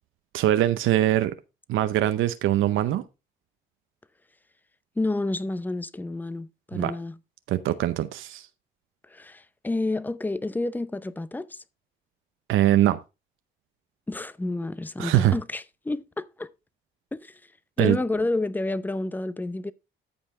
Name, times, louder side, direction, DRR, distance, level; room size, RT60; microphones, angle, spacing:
voice 1, 0.3-1.3 1.7-3.0 6.7-6.9 7.5-8.5 12.5-13.0 15.0-15.4 17.8-18.0, right 13 dB, 85° right, 0.7 m, -22 dB
voice 2, 5.0-7.2 9.1-11.6 14.1-16.5 17.1-17.4 17.8-19.7, left 2 dB, 10° left, 0.6 m, -30 dB
13.5 x 5.6 x 3.7 m
cardioid pair, 90°, 20 cm